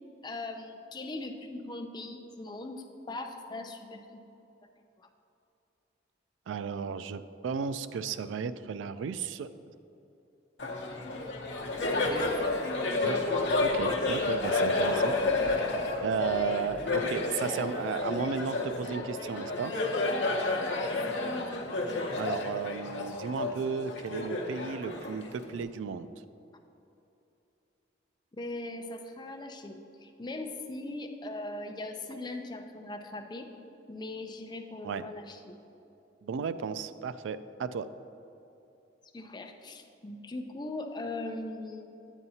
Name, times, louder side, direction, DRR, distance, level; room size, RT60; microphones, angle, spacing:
voice 1, 0.0-4.2 5.0-5.1 11.9-13.2 17.0-17.3 21.2-21.8 28.3-33.5 33.9-35.6 39.1-42.1, left 2 dB, 25° left, 4 dB, 0.5 m, -40 dB
voice 2, 6.5-9.5 13.0-13.2 13.6-15.2 15.5-15.7 16.0-19.7 22.2-26.1 34.8-35.1 36.2-37.9, right 6 dB, 85° right, 13 dB, 0.3 m, -34 dB
Laughter, 10.6-25.6, left 2 dB, 65° left, 0.8 m, -30 dB
9.0 x 8.8 x 2.8 m, 2.8 s
head